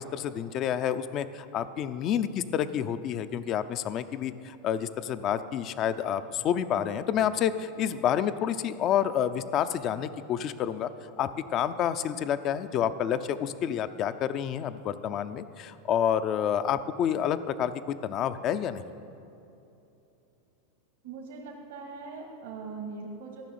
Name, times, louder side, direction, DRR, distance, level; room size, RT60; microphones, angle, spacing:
voice 1, 0.0-10.9 11.2-18.8, left 9 dB, 40° left, 12 dB, 0.5 m, -29 dB
voice 2, 21.0-23.4, right 4 dB, 80° right, -1 dB, 2.0 m, -41 dB
14.5 x 6.2 x 9.4 m, 2.9 s
supercardioid pair, 130°, 0 cm